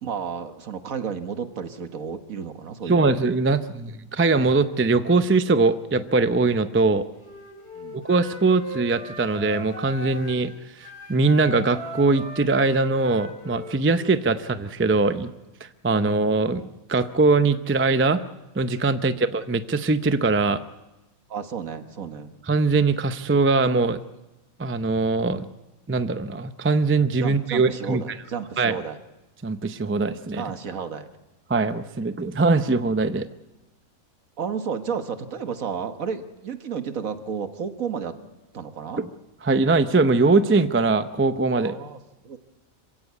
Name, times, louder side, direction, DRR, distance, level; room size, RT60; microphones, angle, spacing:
voice 1, 0.0-3.2 7.8-8.0 19.0-19.2 21.3-22.3 27.2-29.0 30.3-31.1 34.4-38.1 38.5-39.1 41.6-42.0 42.2-42.4, right 6 dB, 70° right, 8 dB, 1.7 m, -32 dB
voice 2, 2.9-7.0 7.9-15.3 15.8-18.2 18.6-20.6 22.5-24.0 24.6-25.5 25.9-28.0 28.6-28.7 29.4-30.4 31.5-33.3 39.0-39.1 39.4-41.7, right 3 dB, 15° right, 10 dB, 0.4 m, -21 dB
Wind instrument woodwind instrument, 7.2-10.4 10.8-14.2, right 1 dB, 50° left, 4.5 m, -38 dB
26.5 x 16.0 x 8.3 m, 1.0 s
omnidirectional pair, 1.5 m